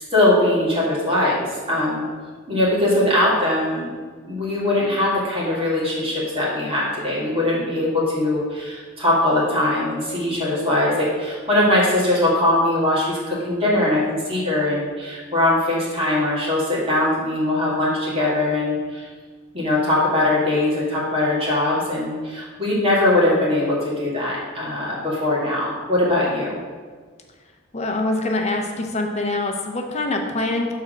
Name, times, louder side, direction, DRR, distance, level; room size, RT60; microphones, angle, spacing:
voice 1, 0.1-2.0 2.5-3.9 4.2-19.1 19.5-26.6, left 1 dB, 30° right, -6 dB, 1.9 m, -21 dB
voice 2, 27.7-30.7, left 2 dB, 35° left, 2 dB, 0.8 m, -24 dB
7.0 x 3.7 x 6.3 m, 1.5 s
head